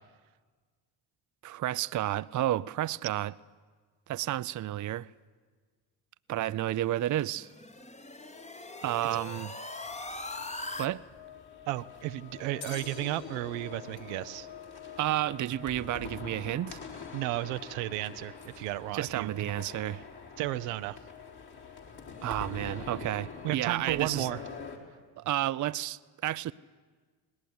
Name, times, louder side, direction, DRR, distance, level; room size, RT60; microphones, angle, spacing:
voice 1, 1.4-3.3 4.1-5.1 6.3-7.5 8.8-9.5 10.8-11.0 15.0-16.8 18.9-20.0 22.2-24.3 25.2-26.5, right 13 dB, 40° right, 0.6 m, -31 dB
sound 1, 6.9-10.9, left 2 dB, 15° left, 1.1 m, -41 dB
sound 2, 9.8-24.8, left 6 dB, 55° left, 3.8 m, -45 dB
voice 2, 11.7-14.5 17.1-19.3 20.4-21.0 23.4-24.4, right 16 dB, 85° right, 0.7 m, -33 dB
18.5 x 18.5 x 9.5 m
supercardioid pair, 60°, 45 cm